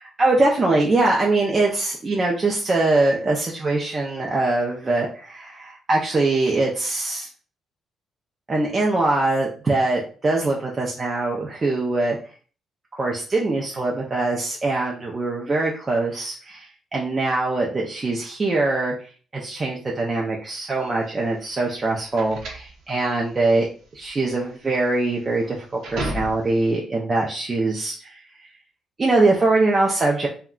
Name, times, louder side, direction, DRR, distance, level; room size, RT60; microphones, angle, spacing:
voice 1, 0.0-7.3 8.5-12.2 12.9-18.9 19.3-23.7 23.9-28.5 29.0-30.3, right 2 dB, 25° right, -2 dB, 0.4 m, -22 dB
sound 1, 20.8-26.7, right 1 dB, 70° right, 0.7 m, -35 dB
2.3 x 2.1 x 3.6 m, 0.41 s
cardioid pair, 140°, 0 cm